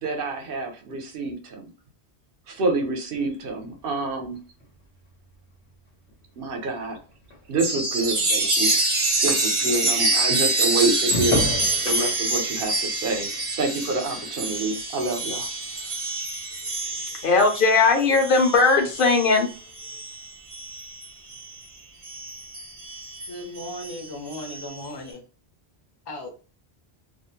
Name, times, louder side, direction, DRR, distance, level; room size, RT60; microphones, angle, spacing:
voice 1, 0.0-1.7 2.5-4.4 6.4-7.0 7.5-8.7 9.2-13.3 13.6-15.5, right 3 dB, 60° right, 4 dB, 0.8 m, -27 dB
sound 1, 3.2-9.9 10.3-14.8 15.1-15.6, left 1 dB, 85° left, 1.1 m, -36 dB
Chime, 7.6-21.6 22.0-24.9, right 2 dB, 35° right, 0.6 m, -27 dB
voice 2, 17.2-19.5, left 4 dB, 60° left, 4 dB, 0.8 m, -18 dB
voice 3, 23.3-25.2 26.1-26.3, left 1 dB, 30° left, 2 dB, 0.5 m, -36 dB
2.5 x 2.0 x 2.7 m, 0.36 s
omnidirectional pair, 1.1 m